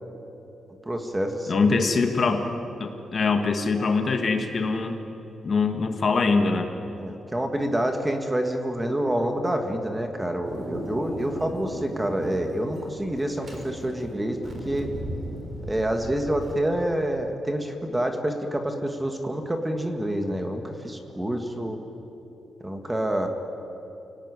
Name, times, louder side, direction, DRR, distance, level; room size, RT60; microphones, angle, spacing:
voice 1, 0.8-1.7 7.0-14.4 14.6-14.9 15.7-21.8 22.6-23.3, right 1 dB, 10° right, 5 dB, 1.6 m, -27 dB
voice 2, 1.5-2.5 2.8-5.0 5.4-6.7, left 4 dB, 35° left, 6 dB, 1.7 m, -23 dB
Thunder, 10.4-16.5, right 1 dB, 25° right, 4.0 m, -36 dB
29.0 x 18.5 x 9.7 m, 3.0 s
wide cardioid pair, 180°, 0 cm